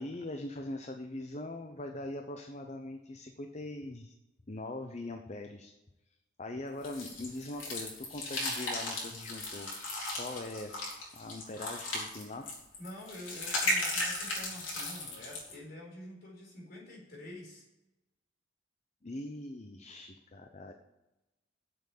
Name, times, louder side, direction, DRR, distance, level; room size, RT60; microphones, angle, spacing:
voice 1, 0.0-4.1 4.5-5.7 6.1-9.7 10.1-10.7 11.1-12.5 19.0-20.7, left 2 dB, 35° left, 5 dB, 0.7 m, -41 dB
sound 1, 6.8-15.5, left 1 dB, 85° left, 4.0 m, -36 dB
voice 2, 12.8-17.7, left 1 dB, 55° left, -2 dB, 4.2 m, -47 dB
7.9 x 7.6 x 7.2 m, 0.99 s
head